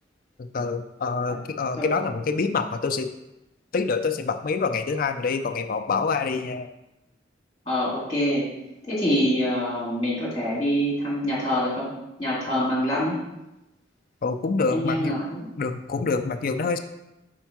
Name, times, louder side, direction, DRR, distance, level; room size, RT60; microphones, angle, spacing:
voice 1, 0.4-3.1 3.7-6.7 11.2-11.3 14.2-15.1 15.6-16.8, left 4 dB, 45° left, 8 dB, 0.4 m, -26 dB
voice 2, 7.7-8.4 8.9-11.9 12.2-13.2 14.7-15.5, equal, 20° left, -7 dB, 2.8 m, -25 dB
5.3 x 4.5 x 5.9 m, 0.92 s
head